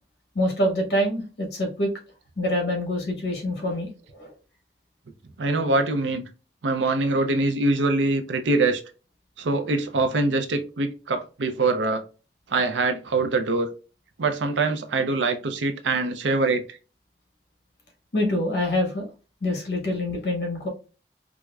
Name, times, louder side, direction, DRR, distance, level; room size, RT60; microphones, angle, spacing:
voice 1, 0.3-1.9 2.4-3.9 4.2-4.3 18.1-19.1 19.4-20.7, left 1 dB, 60° left, 1.4 m, -25 dB
voice 2, 5.4-6.2 6.6-8.8 9.4-12.0 12.5-13.7 14.2-16.8, right 3 dB, 90° right, 0.5 m, -24 dB
4.6 x 2.1 x 2.3 m
head